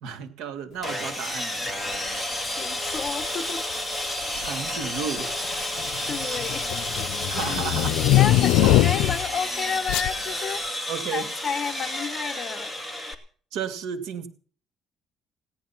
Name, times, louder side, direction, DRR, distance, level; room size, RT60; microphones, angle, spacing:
voice 1, 0.0-1.7 4.4-5.3 7.3-8.0 8.6-8.7 10.9-11.3 13.5-14.3, right 7 dB, 80° right, 2.4 m, -33 dB
Sawing, 0.8-13.1, left 1 dB, 5° right, 2.3 m, -31 dB
voice 2, 2.0-3.6 6.1-6.9 7.4-7.5 7.9-12.8, left 6 dB, 30° left, 1.5 m, -32 dB
sound 1, 3.0-3.3 4.2-4.7 5.0-9.3 9.9-10.1, left 15 dB, 85° left, 0.6 m, -22 dB
17.5 x 11.5 x 5.9 m
cardioid pair, 150°, 0 cm